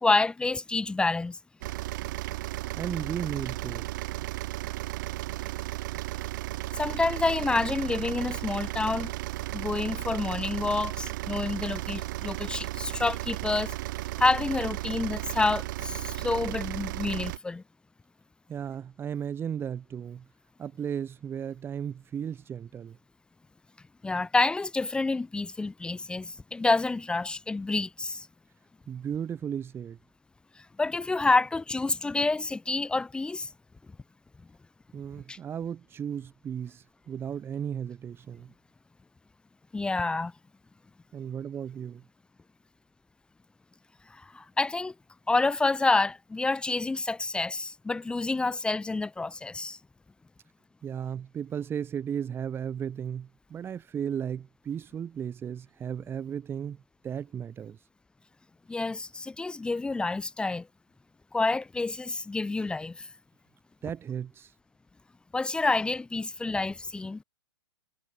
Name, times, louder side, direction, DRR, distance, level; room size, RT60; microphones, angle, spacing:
voice 1, 0.0-1.4 6.7-9.1 9.5-13.7 14.2-17.6 24.0-28.3 30.6-33.5 35.3-35.4 39.7-40.3 44.1-44.9 45.3-49.8 58.7-60.7 61.3-63.1 65.3-67.2, left 3 dB, 5° left, 2.4 m, -28 dB
sound 1, 1.6-17.4, right 18 dB, 50° right, 4.9 m, -34 dB
voice 2, 2.8-3.8 18.5-20.2 20.6-23.0 28.9-30.0 34.9-38.5 41.1-42.0 50.8-56.8 57.0-57.8 63.8-64.5, right 8 dB, 15° right, 2.8 m, -35 dB
hypercardioid pair, 135°, 14 cm